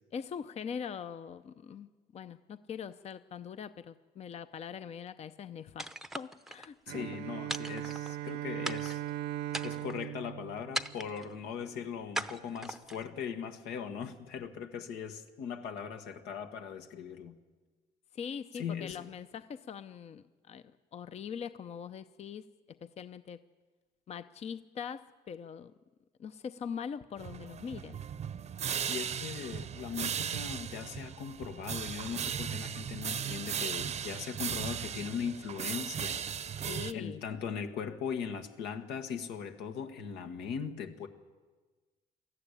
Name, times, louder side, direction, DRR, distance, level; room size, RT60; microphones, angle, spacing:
voice 1, 0.1-1.9 2.1-5.9 6.1-7.1 18.1-20.6 20.9-22.5 22.8-23.4 24.1-25.7 26.2-28.0 36.6-37.2, left 7 dB, 40° left, 12 dB, 0.6 m, -42 dB
sound 1, 5.8-6.7 7.5-8.3 8.6-9.1 9.5-10.1 10.7-11.3 12.1-13.1, right 1 dB, ahead, 0.7 m, -39 dB
voice 2, 6.9-9.0 9.6-17.4 18.5-19.1 28.9-36.2 36.9-41.1, left 7 dB, 90° left, 5 dB, 1.7 m, -39 dB
Bowed string instrument, 6.9-11.6, right 14 dB, 75° right, 0.5 m, -39 dB
sound 2, 27.2-36.9, right 8 dB, 40° right, 0.8 m, -37 dB
20.5 x 14.0 x 10.0 m, 1.3 s
cardioid pair, 110°, 17 cm